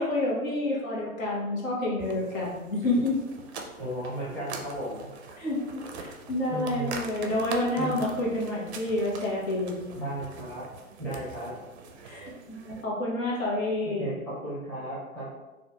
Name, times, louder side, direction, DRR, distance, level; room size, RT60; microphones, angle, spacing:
voice 1, 0.0-3.2 5.4-9.9 12.0-14.1, left 1 dB, 65° left, -4 dB, 1.1 m, -29 dB
sound 1, 2.0-12.9, right 4 dB, 50° right, 0.4 m, -43 dB
voice 2, 3.8-5.1 6.5-6.9 7.8-8.0 9.9-10.6 11.0-11.5 13.8-15.3, right 1 dB, 5° left, -11 dB, 0.7 m, -35 dB
2.8 x 2.5 x 2.3 m, 1.1 s
hypercardioid pair, 125°, 43 cm